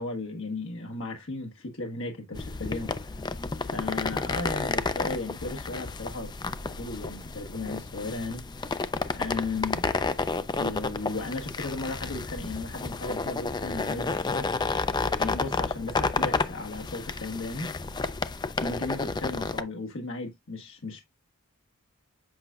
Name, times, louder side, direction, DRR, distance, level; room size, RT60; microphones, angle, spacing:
voice 1, 0.0-2.9 3.6-6.3 6.6-8.4 9.1-9.8 10.6-14.5 15.2-17.7 18.6-21.0, left 3 dB, 60° left, 1.3 m, -35 dB
sound 1, 2.3-19.6, left 3 dB, 20° left, 0.4 m, -31 dB
7.8 x 5.5 x 2.3 m
head